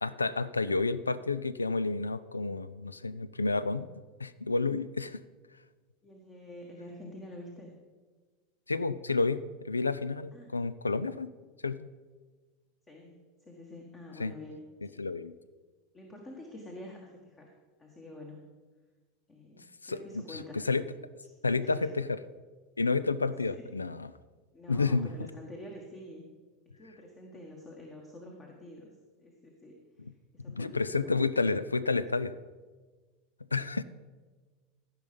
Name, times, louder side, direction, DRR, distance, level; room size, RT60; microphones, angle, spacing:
voice 1, 0.0-3.9 4.2-5.2 8.7-9.4 9.7-11.3 11.6-11.9 14.2-14.3 15.0-15.3 19.8-20.0 20.3-20.8 21.4-22.2 22.8-24.1 24.7-25.1 30.5-32.3 33.5-33.8, left 3 dB, 85° left, 17 dB, 0.3 m, -30 dB
voice 2, 6.0-7.7 9.3-9.4 10.3-10.5 12.9-15.0 15.9-17.5 17.8-18.4 19.3-20.6 21.6-21.9 23.5-23.7 24.5-26.3 26.8-28.9 29.2-29.8 30.3-31.2, left 1 dB, 25° left, 1 dB, 1.5 m, -47 dB
15.0 x 5.7 x 5.3 m, 1.4 s
figure-of-eight pair, 80°, 0 cm